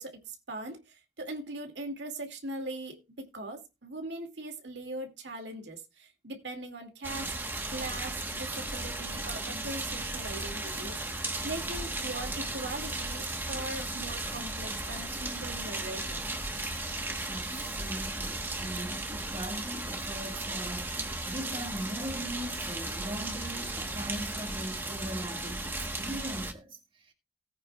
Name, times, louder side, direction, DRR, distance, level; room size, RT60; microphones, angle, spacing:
voice 1, 0.0-7.3 7.7-16.2, right 2 dB, 85° right, 2.4 m, -40 dB
sound 1, 7.0-26.5, right 2 dB, 10° right, 1.2 m, -35 dB
voice 2, 17.3-21.0 21.3-27.1, right 1 dB, 30° right, 2.0 m, -40 dB
18.0 x 9.1 x 2.4 m
head